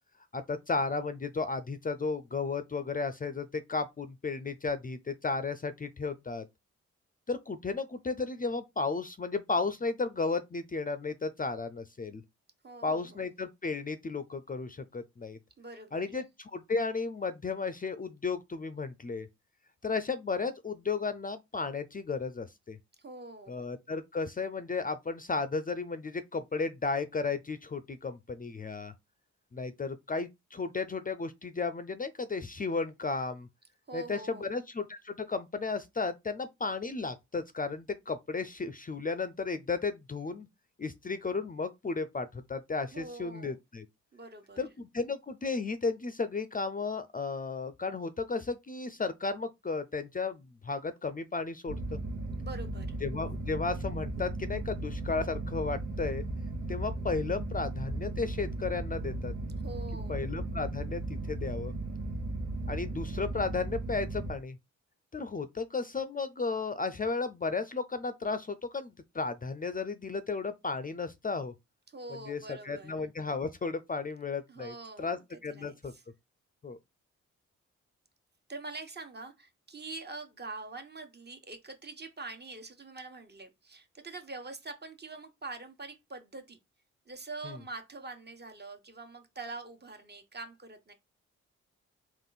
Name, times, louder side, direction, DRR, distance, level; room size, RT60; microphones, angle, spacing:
voice 1, 0.3-6.4 7.3-12.2 12.8-15.4 15.9-19.3 19.8-22.8 23.5-28.9 29.5-33.5 33.9-40.5 40.8-43.8 44.6-52.0 53.0-56.2 56.7-59.3 60.1-61.7 62.7-64.6 65.1-71.5 72.3-75.9 76.6-76.8 87.4-87.6, left 4 dB, 25° left, 0.5 m, -34 dB
voice 2, 12.6-13.3 15.6-16.2 23.0-23.6 33.9-34.6 42.9-43.6 44.1-44.6 52.4-53.0 59.6-60.3 71.9-73.0 74.5-75.2 75.5-76.0 78.5-86.6 87.1-90.9, right 3 dB, 35° right, 1.3 m, -44 dB
sound 1, 51.7-64.3, right 2 dB, 70° right, 1.2 m, -36 dB
3.7 x 2.5 x 4.0 m
supercardioid pair, 55°, 31 cm